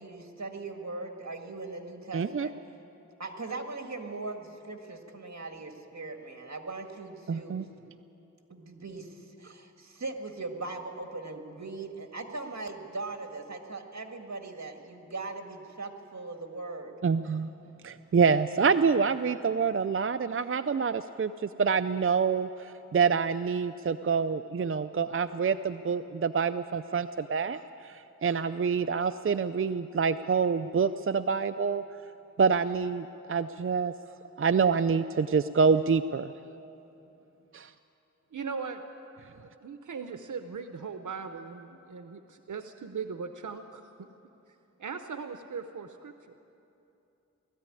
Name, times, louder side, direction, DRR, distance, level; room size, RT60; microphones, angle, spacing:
voice 1, 0.0-2.5 3.2-7.5 8.5-16.9, right 3 dB, 65° right, 4 dB, 2.0 m, -40 dB
voice 2, 2.1-2.5 7.3-7.6 17.0-17.5 17.8-31.8 32.4-33.9 34.4-36.3 37.5-37.7, right 5 dB, 45° right, 10 dB, 0.5 m, -27 dB
voice 3, 38.3-38.8 39.4-44.1 44.8-46.1, right 5 dB, 90° right, 7 dB, 0.7 m, -39 dB
19.0 x 14.0 x 9.8 m, 2.8 s
wide cardioid pair, 55°, 30 cm